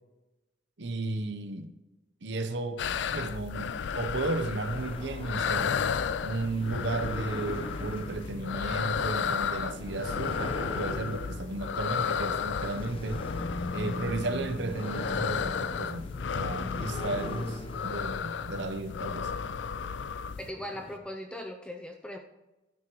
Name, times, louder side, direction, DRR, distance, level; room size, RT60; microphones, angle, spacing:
voice 1, 0.8-1.7 2.2-2.8 3.1-5.8 6.2-13.2 13.7-19.3, right 2 dB, 65° right, 0.9 m, -34 dB
sound 1, 2.8-20.5, left 6 dB, 65° left, 0.4 m, -33 dB
sound 2, 4.7-21.0, left 1 dB, 30° left, 1.0 m, -41 dB
voice 2, 20.4-22.2, left 1 dB, 5° left, 0.6 m, -39 dB
12.5 x 9.5 x 3.2 m
head